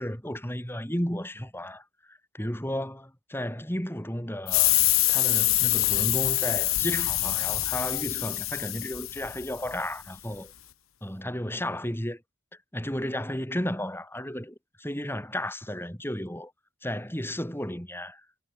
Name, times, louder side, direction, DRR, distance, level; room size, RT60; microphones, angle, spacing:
voice 1, 0.0-4.8 5.1-10.5 11.0-12.2 12.7-16.5 16.8-18.2, left 1 dB, 10° left, 7.5 m, -33 dB
sound 1, 4.5-9.8, left 16 dB, 80° left, 7.4 m, -25 dB
head